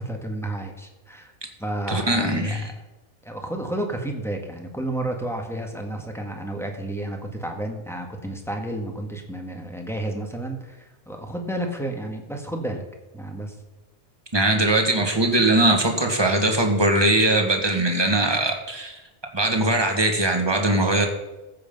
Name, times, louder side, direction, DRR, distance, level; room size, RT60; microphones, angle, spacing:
voice 1, 0.0-1.3 1.6-2.7 3.2-12.8 13.1-13.6, right 1 dB, ahead, 2 dB, 1.6 m, -31 dB
voice 2, 1.9-2.7 14.3-19.0 19.3-21.1, right 2 dB, 25° right, 3 dB, 1.6 m, -21 dB
14.5 x 7.8 x 5.4 m, 1.1 s
omnidirectional pair, 1.1 m